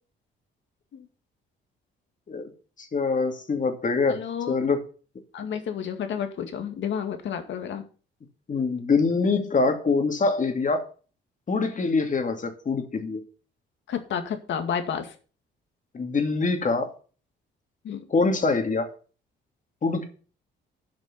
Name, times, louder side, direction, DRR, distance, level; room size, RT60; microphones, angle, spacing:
voice 1, 2.8-4.2 4.5-4.8 8.5-10.9 11.5-13.2 15.9-16.9 18.1-18.9 19.8-20.0, left 4 dB, 40° left, 6 dB, 2.4 m, -24 dB
voice 2, 4.1-4.6 5.3-7.8 13.9-15.1 17.8-18.0, left 8 dB, 70° left, 7 dB, 2.0 m, -31 dB
9.4 x 5.3 x 8.0 m, 0.38 s
cardioid pair, 90°, 20 cm